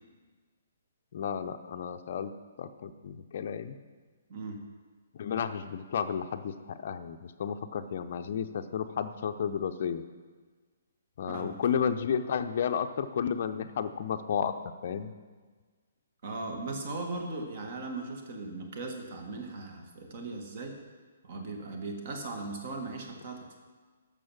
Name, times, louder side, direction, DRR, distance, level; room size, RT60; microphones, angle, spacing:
voice 1, 1.1-2.3 2.6-3.8 5.2-10.0 11.2-15.1, left 7 dB, 45° left, 7 dB, 0.6 m, -32 dB
voice 2, 11.3-11.6 16.2-20.8 21.2-23.6, right 3 dB, 45° right, 3 dB, 1.9 m, -38 dB
12.5 x 6.9 x 5.9 m, 1.4 s
figure-of-eight pair, 125°, 0 cm